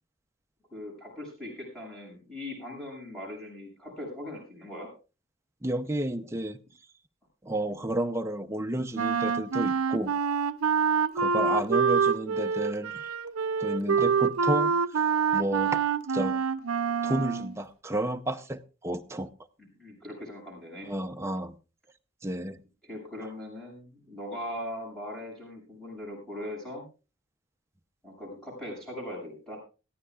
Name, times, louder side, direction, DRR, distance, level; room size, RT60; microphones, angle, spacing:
voice 1, 0.7-4.9 19.6-20.9 22.9-26.8 28.0-29.6, left 1 dB, 5° left, -2 dB, 6.9 m, -40 dB
voice 2, 5.6-6.6 7.4-10.1 11.1-13.1 13.6-15.0 15.3-16.4 17.0-19.3 20.8-21.5 22.2-22.6, right 1 dB, 15° right, 6 dB, 0.6 m, -31 dB
Wind instrument woodwind instrument, 8.9-17.5, right 6 dB, 85° right, 0.6 m, -26 dB
21.0 x 14.0 x 2.4 m, 0.32 s
head